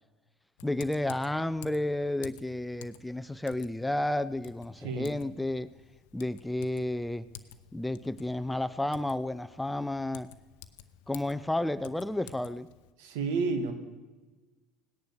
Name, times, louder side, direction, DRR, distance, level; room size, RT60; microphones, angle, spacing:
Typing, 0.6-12.9, left 10 dB, 70° left, 0.7 m, -52 dB
voice 1, 0.6-5.7 6.1-7.3 7.7-10.3 11.1-12.7, left 1 dB, 5° left, 15 dB, 0.5 m, -31 dB
voice 2, 4.8-5.2 13.0-13.7, right 4 dB, 70° right, 8 dB, 1.7 m, -30 dB
17.5 x 10.5 x 6.8 m, 1.2 s
hypercardioid pair, 70°, 0 cm